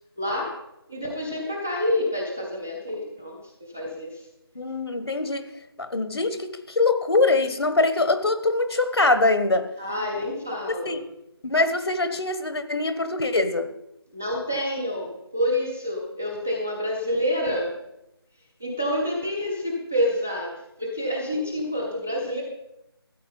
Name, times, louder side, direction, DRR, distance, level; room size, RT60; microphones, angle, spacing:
voice 1, 0.2-0.6 0.9-3.4 3.7-4.2 9.8-11.0 14.1-17.8 18.6-22.4, left 1 dB, 5° right, 0 dB, 0.3 m, -28 dB
voice 2, 4.5-5.5 5.8-9.7 10.7-11.0 11.4-13.7, left 3 dB, 80° left, 11 dB, 1.5 m, -23 dB
13.5 x 8.7 x 5.4 m, 0.84 s
figure-of-eight pair, 165°, 13 cm